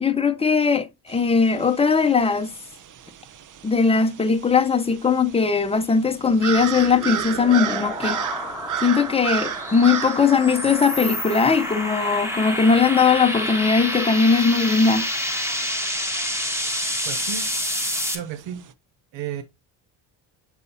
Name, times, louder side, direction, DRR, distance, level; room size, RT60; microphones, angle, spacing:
voice 1, 0.0-2.5 3.6-8.2 8.8-15.0, left 5 dB, 15° left, 0.8 m, -19 dB
sound 1, 1.1-18.7, right 9 dB, 45° right, 0.7 m, -35 dB
sound 2, 6.2-18.2, equal, 5° right, 2.1 m, -28 dB
voice 2, 17.0-17.4 18.1-18.6 19.1-19.4, right 9 dB, 80° right, 0.8 m, -32 dB
7.3 x 5.3 x 2.7 m
supercardioid pair, 75°, 44 cm